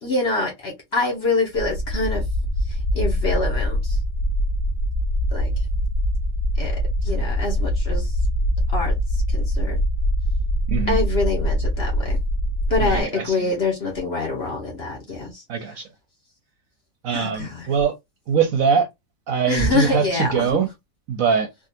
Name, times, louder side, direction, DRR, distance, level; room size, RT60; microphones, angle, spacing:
voice 1, 0.0-2.2 2.9-4.0 5.3-5.5 6.6-6.8 7.0-8.1 8.7-8.9 9.3-9.8 10.9-12.2 12.7-15.4 17.1-17.7 19.5-20.6, left 3 dB, 45° left, 1.0 m, -25 dB
sound 1, 1.5-13.0, equal, 65° left, 0.7 m, -23 dB
voice 2, 10.7-11.0 12.8-13.5 15.5-15.9 17.0-17.9 18.3-18.9 19.3-20.7 21.1-21.5, right 6 dB, 65° right, 1.0 m, -22 dB
3.5 x 2.4 x 2.7 m
omnidirectional pair, 1.8 m